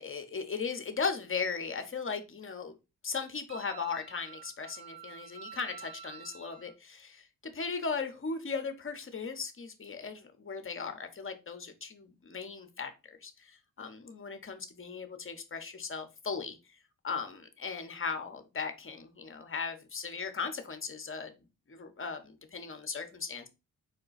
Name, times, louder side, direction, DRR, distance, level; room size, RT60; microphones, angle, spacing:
voice 1, 0.0-2.8 3.0-16.6 17.0-21.3 21.7-23.5, left 5 dB, 35° left, 7 dB, 1.0 m, -37 dB
Wind instrument woodwind instrument, 3.5-6.7, right 8 dB, 75° right, 1.1 m, -49 dB
5.0 x 2.2 x 3.9 m, 0.27 s
cardioid pair, 55°, 37 cm